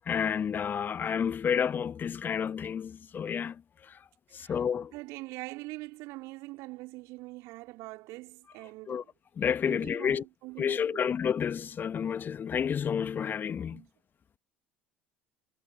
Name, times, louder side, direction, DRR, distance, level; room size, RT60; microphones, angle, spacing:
voice 1, 0.1-3.5 4.3-4.9 8.9-9.0 9.4-10.2 10.6-13.8, left 7 dB, 30° left, 1.3 m, -30 dB
voice 2, 4.9-9.1 9.6-11.2 13.7-13.9, right 22 dB, 55° right, 4.0 m, -43 dB
figure-of-eight pair, 65°, 6 cm